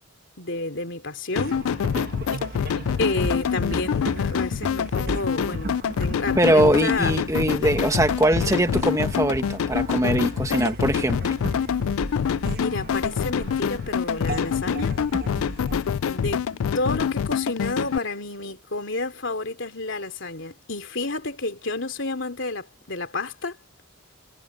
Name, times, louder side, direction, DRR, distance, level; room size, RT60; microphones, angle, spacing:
voice 1, 0.4-1.6 2.5-7.1 7.6-7.8 12.6-14.9 16.0-23.6, left 2 dB, 60° left, 3.1 m, -30 dB
sound 1, 1.4-18.0, left 7 dB, 80° left, 0.4 m, -26 dB
sound 2, 1.4-17.0, right 1 dB, 45° right, 1.4 m, -35 dB
voice 2, 6.4-11.3, right 1 dB, 15° right, 1.4 m, -22 dB
head